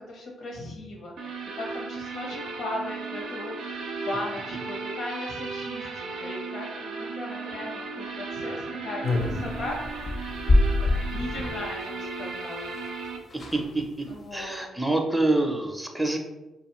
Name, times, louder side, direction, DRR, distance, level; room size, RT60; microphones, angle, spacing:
voice 1, 0.1-10.4 10.8-12.8 14.1-14.6, left 2 dB, 75° left, -1 dB, 0.9 m, -37 dB
sound 1, 1.2-13.2, right 4 dB, 75° right, 0.4 m, -35 dB
sound 2, 9.0-11.6 12.8-12.9 13.0-13.1 13.3-13.7 14.1-14.4, left 2 dB, 50° left, 0.6 m, -25 dB
voice 2, 13.3-14.1 14.3-16.2, right 2 dB, 5° right, 2 dB, 0.5 m, -26 dB
2.5 x 2.4 x 3.0 m, 1.0 s
supercardioid pair, 60°, 0 cm